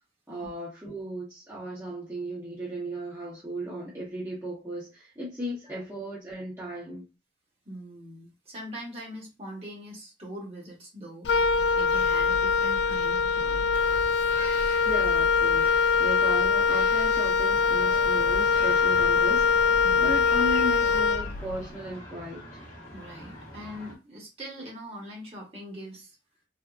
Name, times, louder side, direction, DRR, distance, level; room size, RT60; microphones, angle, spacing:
voice 1, 0.3-7.0 14.8-22.4, equal, 15° right, 0.8 m, -36 dB
voice 2, 7.6-13.6 19.8-20.2 22.9-26.2, equal, 35° right, 1.1 m, -42 dB
Wind instrument woodwind instrument, 11.2-21.7, left 5 dB, 90° left, 0.3 m, -23 dB
Bird vocalization bird call bird song, 13.7-21.0, right 1 dB, 50° right, 0.7 m, -45 dB
sound 1, 17.5-23.9, left 1 dB, 40° left, 1.0 m, -44 dB
3.4 x 2.1 x 2.3 m
head